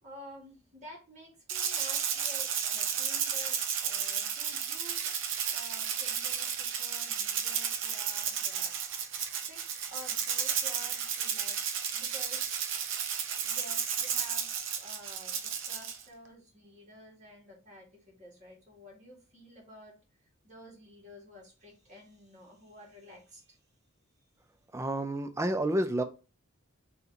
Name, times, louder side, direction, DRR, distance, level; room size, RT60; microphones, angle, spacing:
voice 1, 0.0-5.1 5.5-8.7 9.2-9.6 9.9-11.6 11.9-13.0 13.4-14.5 14.8-20.0 20.4-23.6, equal, 35° right, 1.9 m, -51 dB
Rattle (instrument), 1.5-16.0, right 8 dB, 60° right, 0.7 m, -33 dB
voice 2, 24.7-26.0, right 1 dB, 15° right, 0.4 m, -29 dB
4.0 x 3.0 x 3.9 m
head